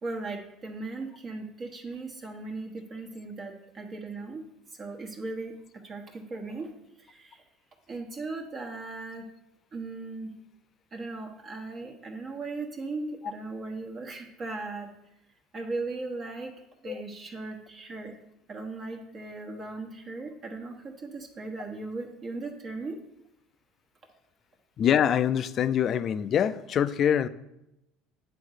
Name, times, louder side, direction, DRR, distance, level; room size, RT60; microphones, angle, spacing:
voice 1, 0.0-4.4 4.8-6.7 7.0-7.4 7.9-9.3 9.7-10.3 10.9-14.9 15.5-16.5 16.8-18.2 18.5-23.0, right 3 dB, 35° right, 1 dB, 1.2 m, -37 dB
voice 2, 24.8-27.3, left 9 dB, 45° left, 14 dB, 0.5 m, -24 dB
9.1 x 3.8 x 6.5 m, 0.85 s
supercardioid pair, 105°, 0 cm